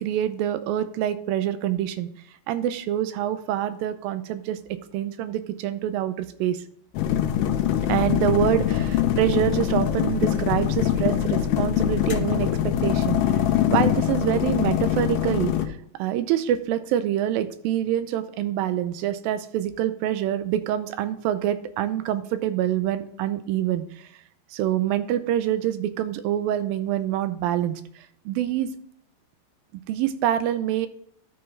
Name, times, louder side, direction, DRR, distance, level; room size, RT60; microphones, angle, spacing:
voice 1, 0.0-2.1 2.5-4.6 4.9-6.6 7.9-13.2 13.7-24.1 24.5-28.7 29.9-30.9, right 11 dB, 85° right, 11 dB, 2.4 m, -26 dB
sound 1, 7.0-15.7, left 11 dB, 80° left, 2.3 m, -23 dB
13.0 x 4.6 x 3.2 m, 0.66 s
omnidirectional pair, 4.1 m